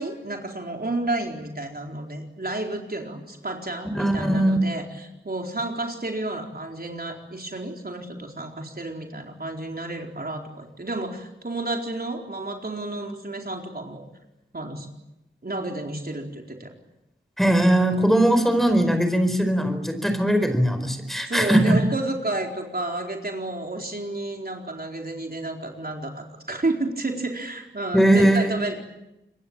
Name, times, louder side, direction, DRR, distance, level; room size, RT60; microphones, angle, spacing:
voice 1, 0.0-14.0 14.5-14.9 15.4-16.8 21.2-28.8, right 2 dB, 50° right, 2 dB, 4.3 m, -31 dB
voice 2, 3.9-4.6 17.4-21.8 27.9-28.6, right 1 dB, ahead, 7 dB, 4.6 m, -20 dB
26.5 x 23.0 x 9.0 m, 0.92 s
wide cardioid pair, 60°, 20 cm